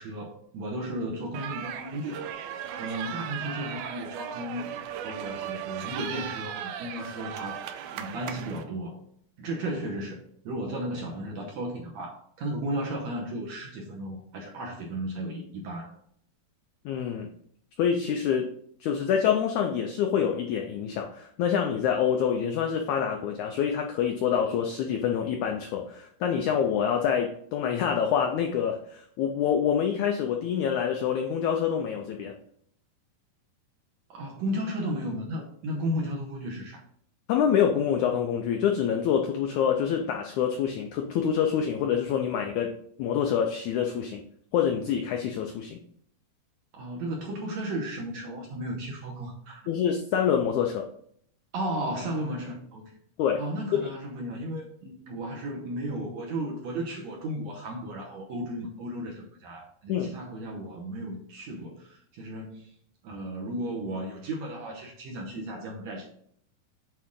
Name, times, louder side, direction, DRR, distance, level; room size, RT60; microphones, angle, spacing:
voice 1, 0.0-2.5 2.8-7.6 7.9-9.0 9.4-16.0 34.1-36.8 46.7-49.7 51.5-52.8 53.4-62.7 63.0-66.1, right 1 dB, 70° right, 0 dB, 1.8 m, -34 dB
sound 1, 1.3-8.6, right 9 dB, 85° right, 1.8 m, -37 dB
voice 2, 16.8-17.3 17.8-18.5 18.8-32.3 37.3-42.7 43.0-44.2 44.5-45.8 49.7-50.9 53.2-53.4 53.8-53.9 59.9-60.1, left 8 dB, 90° left, 3 dB, 1.7 m, -26 dB
8.4 x 3.7 x 3.6 m, 0.64 s
omnidirectional pair, 4.1 m